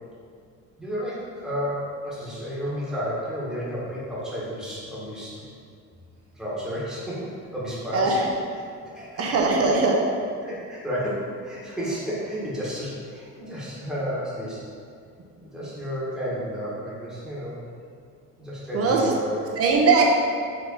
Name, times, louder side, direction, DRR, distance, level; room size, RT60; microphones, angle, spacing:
voice 1, 0.8-5.4 6.3-8.2 8.8-10.0 10.4-14.6 15.4-17.6 18.4-19.5, equal, ahead, -8 dB, 1.4 m, -32 dB
voice 2, 7.9-8.2 9.2-9.9 18.7-19.0 19.6-20.0, right 4 dB, 45° right, 0 dB, 0.9 m, -20 dB
4.8 x 3.8 x 5.3 m, 2.3 s
cardioid pair, 150°, 32 cm